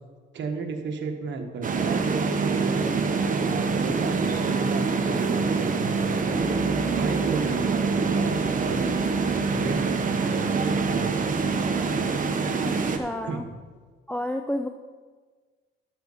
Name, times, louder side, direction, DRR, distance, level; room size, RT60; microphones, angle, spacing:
voice 1, 0.3-8.9 9.5-11.5 13.2-13.5, right 4 dB, 65° right, 4 dB, 1.4 m, -33 dB
sound 1, 1.6-13.0, right 4 dB, 40° right, 1.0 m, -25 dB
sound 2, 6.2-13.7, left 6 dB, 55° left, 1.7 m, -43 dB
voice 2, 12.7-13.5 14.1-14.7, left 1 dB, 5° left, 5 dB, 0.4 m, -30 dB
12.0 x 6.8 x 4.1 m, 1.4 s
cardioid pair, 90°, 20 cm